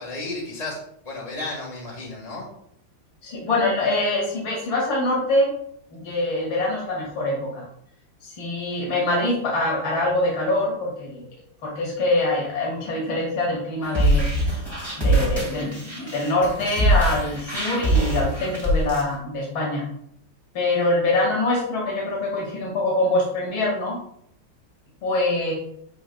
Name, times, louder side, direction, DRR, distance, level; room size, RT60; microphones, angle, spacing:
voice 1, 0.0-2.5, left 2 dB, 20° left, -3 dB, 1.8 m, -33 dB
voice 2, 3.2-5.5 5.9-7.7 8.2-11.2 11.6-14.7 15.0-19.8 20.5-24.0 25.0-25.5, left 2 dB, 75° left, -3 dB, 3.0 m, -24 dB
sound 1, 13.8-19.0, right 1 dB, 15° right, 2.5 m, -23 dB
10.5 x 4.9 x 2.4 m, 0.71 s
omnidirectional pair, 2.2 m